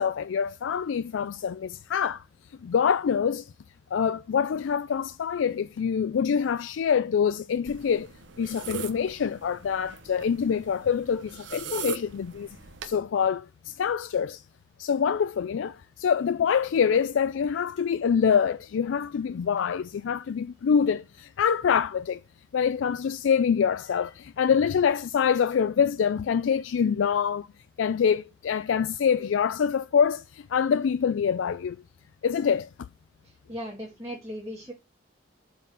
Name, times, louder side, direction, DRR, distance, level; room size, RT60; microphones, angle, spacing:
voice 1, 0.0-2.2 2.6-3.5 3.9-8.1 8.4-12.6 12.8-14.4 14.8-22.2 22.5-27.5 27.8-31.8 32.2-32.7, left 7 dB, 85° left, 0.4 m, -25 dB
sound 1, 7.7-13.0, right 6 dB, 75° right, 1.1 m, -40 dB
voice 2, 33.2-34.7, equal, 15° right, 1.6 m, -38 dB
7.9 x 4.2 x 6.1 m
head